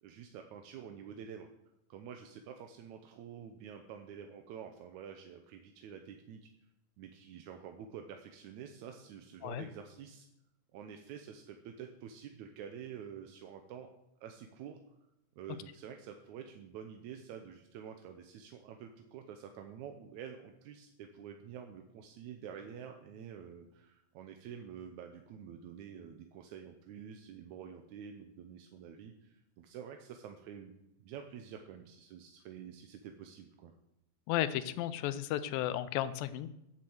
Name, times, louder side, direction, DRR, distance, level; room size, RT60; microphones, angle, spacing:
voice 1, 0.0-1.5 1.9-6.5 7.0-10.3 10.7-13.9 14.2-14.8 15.4-30.7 31.0-33.7, right 8 dB, 70° right, 5 dB, 1.9 m, -48 dB
voice 2, 34.3-36.5, left 12 dB, 85° left, 14 dB, 2.4 m, -34 dB
9.5 x 7.4 x 7.9 m, 0.86 s
omnidirectional pair, 4.0 m